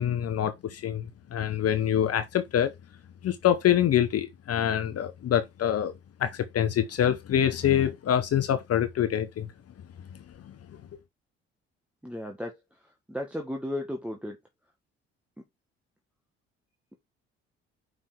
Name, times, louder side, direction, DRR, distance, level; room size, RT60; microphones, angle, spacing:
voice 1, 0.0-2.7 3.2-5.9 6.2-9.5 10.4-10.6, left 10 dB, 45° left, 0.9 m, -25 dB
voice 2, 12.0-12.6 13.1-14.4, left 1 dB, 5° right, 1.6 m, -34 dB
5.4 x 4.9 x 4.9 m
hypercardioid pair, 50°, 33 cm